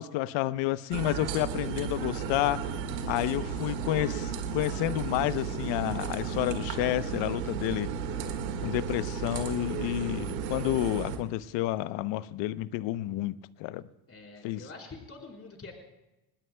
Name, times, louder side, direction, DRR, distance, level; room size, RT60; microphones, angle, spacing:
voice 1, 0.0-2.6 3.1-7.9 8.6-13.8 14.4-14.7, left 15 dB, 60° left, 16 dB, 0.9 m, -30 dB
sound 1, 0.9-11.2, right 6 dB, 85° right, 1.9 m, -34 dB
voice 2, 14.1-15.7, left 3 dB, 30° left, 0 dB, 4.3 m, -46 dB
27.5 x 20.0 x 2.2 m, 0.97 s
hypercardioid pair, 75°, 50 cm